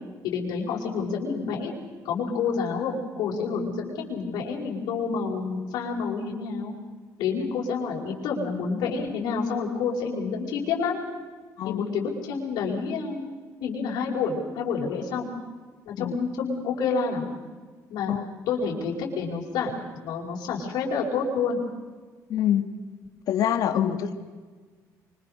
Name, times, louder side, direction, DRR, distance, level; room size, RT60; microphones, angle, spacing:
voice 1, 0.2-1.7 2.0-6.7 7.2-11.0 11.6-13.3 13.6-15.3 15.8-17.3 17.9-18.1 18.5-19.7 20.0-21.6 23.7-24.0, left 5 dB, 85° left, -6 dB, 5.2 m, -28 dB
voice 2, 22.3-22.7 23.3-24.1, left 10 dB, 65° left, 8 dB, 1.8 m, -25 dB
25.5 x 24.5 x 6.6 m, 1.4 s
cardioid pair, 150°, 7 cm